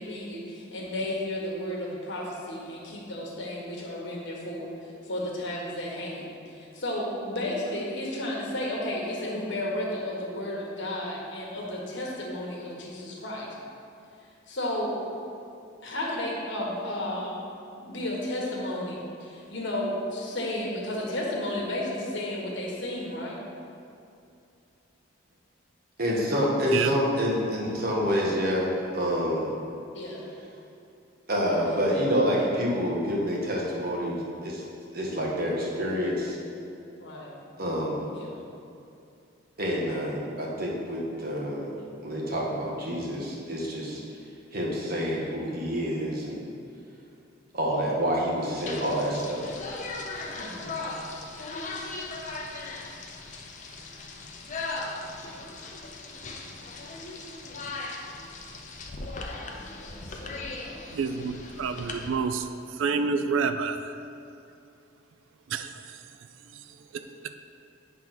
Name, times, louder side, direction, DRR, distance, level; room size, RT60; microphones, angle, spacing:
voice 1, 0.0-13.6 14.5-15.0 15.8-17.4 17.8-23.4 29.9-30.3 37.0-37.3 38.1-38.5 50.4-51.0 59.5-60.9, left 1 dB, 60° left, -3 dB, 1.5 m, -33 dB
voice 2, 26.0-29.5 31.3-34.6 34.9-36.4 37.6-38.0 39.6-41.7 42.0-44.0 44.5-46.4 47.5-49.4, equal, 50° right, -3 dB, 1.4 m, -27 dB
sound 1, 48.6-62.1, left 3 dB, 40° left, 0.6 m, -38 dB
voice 3, 60.9-64.0 65.5-66.0 66.5-66.6 66.9-67.3, right 5 dB, 75° right, 9 dB, 0.4 m, -29 dB
9.2 x 3.6 x 5.8 m, 2.6 s
head